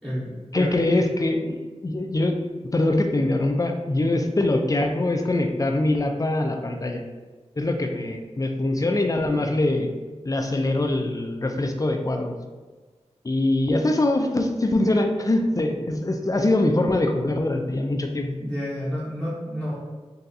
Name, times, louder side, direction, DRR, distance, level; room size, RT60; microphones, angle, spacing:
voice 1, 0.0-0.7 18.4-19.7, equal, 5° right, -8 dB, 0.7 m, -30 dB
voice 2, 0.5-1.6 1.8-2.4 2.7-7.1 7.6-9.9 10.2-12.3 13.2-18.3, left 2 dB, 30° left, 4 dB, 0.4 m, -23 dB
3.9 x 2.3 x 2.6 m, 1.3 s
wide cardioid pair, 55°, 12 cm